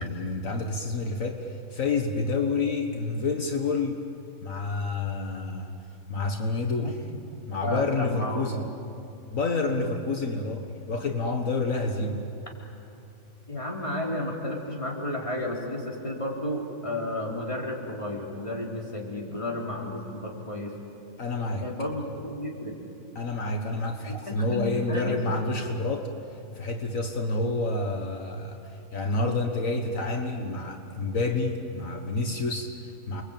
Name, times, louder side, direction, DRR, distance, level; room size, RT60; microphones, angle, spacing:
voice 1, 0.0-4.0 4.4-5.8 6.1-7.0 7.5-8.7 9.3-12.2 21.2-21.7 23.2-33.2, left 3 dB, 70° left, 4 dB, 1.8 m, -29 dB
voice 2, 7.6-8.6 13.5-20.8 21.6-22.7 24.1-25.1, left 1 dB, 20° left, -2 dB, 3.9 m, -32 dB
29.0 x 23.0 x 9.0 m, 2.7 s
omnidirectional pair, 1.4 m